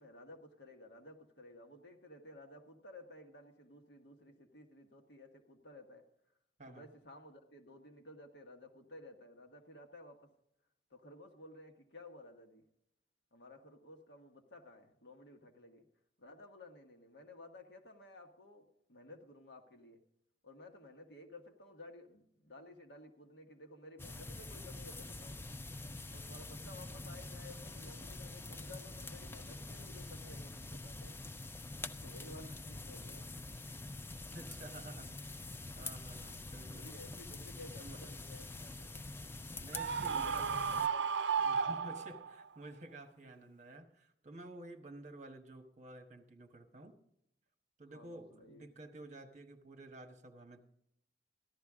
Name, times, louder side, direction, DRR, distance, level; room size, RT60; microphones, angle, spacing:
voice 1, 0.0-6.0 6.7-10.3 10.9-12.6 13.3-15.9 16.2-20.0 20.4-25.4 26.1-31.2 32.0-33.3 36.6-39.1 40.0-41.1 43.2-43.5 47.9-48.7, left 1 dB, 70° left, 4 dB, 1.4 m, -55 dB
sound 1, 24.0-40.9, left 2 dB, 15° left, 0.4 m, -46 dB
voice 2, 34.3-35.2 35.7-36.9 37.8-38.0 39.6-40.6 41.4-46.9 47.8-50.6, right 1 dB, 40° right, 5 dB, 1.3 m, -51 dB
Screaming, 39.7-42.4, right 6 dB, 85° right, 0.5 m, -34 dB
14.5 x 11.5 x 3.6 m, 0.76 s
head